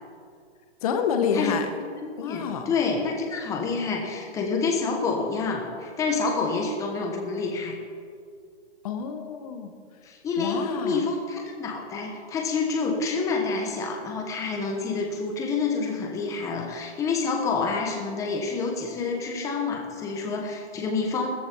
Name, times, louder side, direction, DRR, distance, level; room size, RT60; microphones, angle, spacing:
voice 1, 0.8-1.7 2.2-2.7 8.8-9.7 10.4-11.0, left 7 dB, 35° left, 7 dB, 1.3 m, -28 dB
voice 2, 2.0-7.8 10.0-21.3, left 4 dB, 10° left, 2 dB, 1.2 m, -28 dB
14.5 x 14.0 x 4.6 m, 2.2 s
hypercardioid pair, 160°, 34 cm